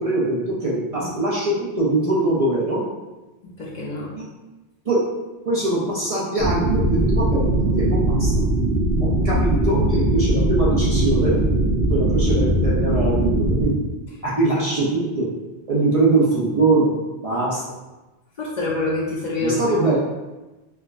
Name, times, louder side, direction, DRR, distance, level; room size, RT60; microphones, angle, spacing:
voice 1, 0.0-2.8 4.1-4.3 4.8-5.0 5.5-7.5 7.8-8.3 9.0-11.4 11.9-13.8 14.2-15.3 15.7-16.9 17.2-17.7 19.4-20.0, right 2 dB, 40° right, -7 dB, 0.6 m, -22 dB
voice 2, 3.6-4.1 18.4-20.0, left 2 dB, 50° left, -5 dB, 0.7 m, -26 dB
sound 1, 6.4-13.7, right 1 dB, 80° right, 1.0 m, -20 dB
4.5 x 2.1 x 2.4 m, 1.1 s
omnidirectional pair, 1.1 m